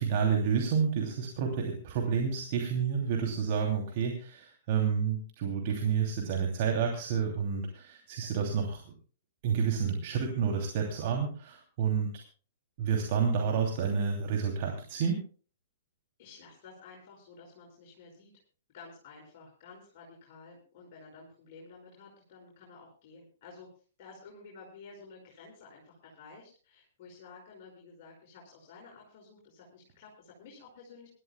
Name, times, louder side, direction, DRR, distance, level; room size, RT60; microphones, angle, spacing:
voice 1, 0.0-8.8 9.4-12.2 12.8-15.2, right 6 dB, 45° right, 1 dB, 2.9 m, -29 dB
voice 2, 16.2-18.3 18.7-23.7 24.0-31.1, left 4 dB, 40° left, -3 dB, 5.4 m, -52 dB
26.0 x 13.0 x 2.3 m, 0.38 s
figure-of-eight pair, 115°, 0 cm